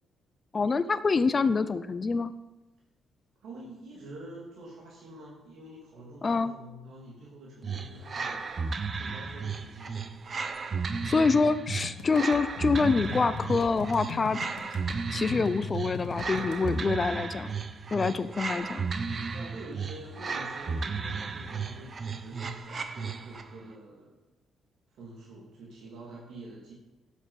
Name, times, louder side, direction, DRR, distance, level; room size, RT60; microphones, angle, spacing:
voice 1, 0.5-2.3 6.2-6.5 11.0-14.4 15.1-17.5 17.9-18.8, left 4 dB, 35° left, 14 dB, 0.7 m, -26 dB
voice 2, 3.4-8.4 9.0-10.0 19.3-24.2 24.9-26.7, right 1 dB, 75° right, -3 dB, 3.0 m, -46 dB
sound 1, 7.6-23.6, right 4 dB, 40° right, 1.0 m, -34 dB
sound 2, 11.7-16.8, left 7 dB, 80° left, 1.1 m, -40 dB
11.0 x 8.3 x 6.6 m, 1.1 s
cardioid pair, 90°, 0 cm